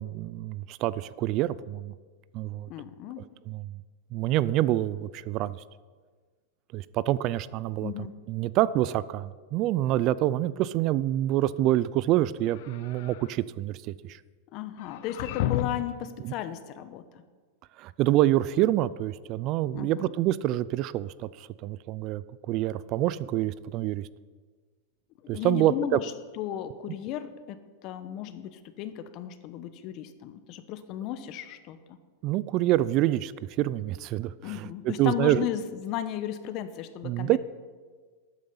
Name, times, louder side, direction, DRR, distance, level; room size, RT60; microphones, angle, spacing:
voice 1, 0.0-1.9 2.3-2.7 3.5-3.7 4.1-5.6 6.7-7.9 8.3-14.2 16.2-16.3 17.8-24.1 25.3-26.0 32.2-33.3 33.6-35.5 37.0-37.4, right 14 dB, 45° right, 18 dB, 0.4 m, -27 dB
voice 2, 2.7-3.2 7.8-8.2 14.5-17.0 19.7-20.1 25.2-32.0 34.4-37.4, left 11 dB, 45° left, 11 dB, 1.0 m, -35 dB
sound 1, 12.4-13.3 14.8-16.0, left 12 dB, 60° left, 0.6 m, -32 dB
13.0 x 9.1 x 5.6 m, 1.5 s
hypercardioid pair, 130°, 0 cm